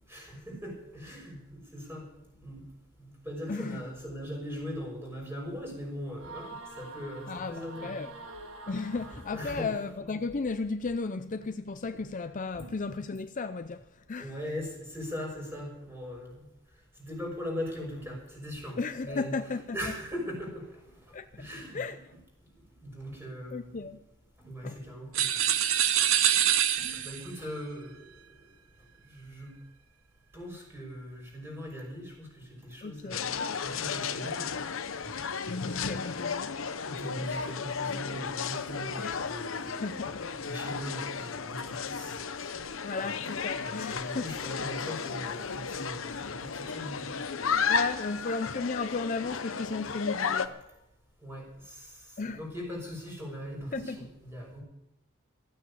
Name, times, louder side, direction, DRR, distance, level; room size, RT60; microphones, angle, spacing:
voice 1, 0.1-2.0 2.4-2.6 3.0-7.9 9.3-9.7 12.5-12.7 14.2-16.5 17.0-19.3 19.7-20.9 21.4-21.8 22.8-23.8 24.4-25.4 26.8-28.2 29.0-29.5 30.3-34.5 36.9-40.1 40.4-42.2 43.2-43.3 43.5-47.1 51.2-54.6, equal, 10° right, 6.0 m, -40 dB
voice 2, 3.5-3.8 7.3-8.1 8.7-14.4 18.8-19.9 21.1-21.4 21.7-22.0 23.5-24.0 24.6-24.8 32.8-33.2 35.5-36.6 37.2-37.3 39.0-39.2 39.8-40.2 42.8-44.3 47.7-50.6 52.2-52.4 53.7-54.0, left 4 dB, 40° left, 0.5 m, -34 dB
sound 1, 6.2-10.0, right 3 dB, 90° right, 2.0 m, -46 dB
sound 2, 25.1-27.3, right 10 dB, 75° right, 0.9 m, -25 dB
sound 3, 33.1-50.5, left 6 dB, 70° left, 0.8 m, -34 dB
14.5 x 9.2 x 8.6 m
head